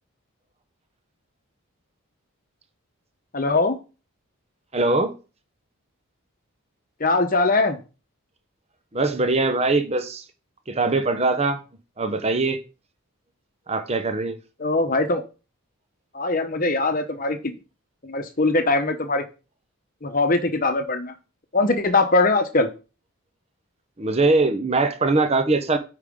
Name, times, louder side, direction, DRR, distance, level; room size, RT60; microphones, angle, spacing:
voice 1, 3.3-3.8 7.0-7.8 14.6-15.2 16.1-17.4 18.0-19.2 20.0-21.1 21.5-22.7, left 2 dB, 40° left, 1.0 m, -21 dB
voice 2, 4.7-5.1 8.9-10.2 10.7-11.6 12.0-12.6 13.7-14.4 24.0-25.8, right 3 dB, 30° right, 0.8 m, -21 dB
8.9 x 5.0 x 3.6 m
head